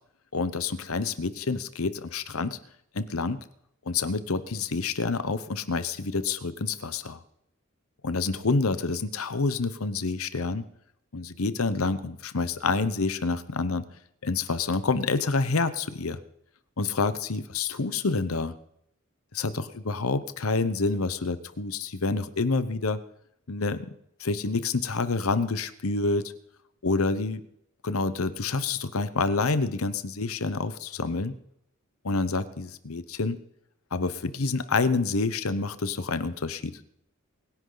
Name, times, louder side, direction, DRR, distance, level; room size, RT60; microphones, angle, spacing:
voice 1, 0.3-2.6 2.9-3.4 3.9-7.2 8.0-10.7 11.1-13.8 14.2-16.2 16.8-18.6 19.3-23.0 23.5-23.9 24.2-26.3 26.8-27.4 27.8-31.3 32.0-33.4 33.9-36.8, left 3 dB, 85° left, 13 dB, 0.9 m, -28 dB
24.0 x 10.5 x 4.0 m, 0.75 s
head